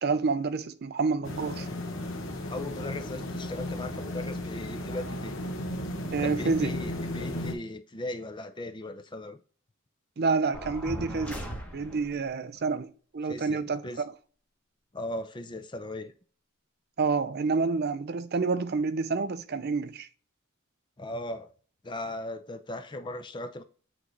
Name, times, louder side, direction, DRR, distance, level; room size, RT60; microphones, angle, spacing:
voice 1, 0.0-1.7 6.1-6.7 10.2-11.4 11.7-12.9 13.1-13.8 17.0-20.1, right 4 dB, 50° right, 0.5 m, -28 dB
sound 1, 1.2-7.5, left 1 dB, 60° left, 1.1 m, -35 dB
voice 2, 2.5-5.4 6.2-9.4 13.2-14.0 14.9-16.1 21.0-21.5 21.8-23.6, left 1 dB, 20° left, 0.5 m, -38 dB
sound 2, 10.5-12.2, equal, 5° left, 1.1 m, -38 dB
8.6 x 3.2 x 4.0 m
head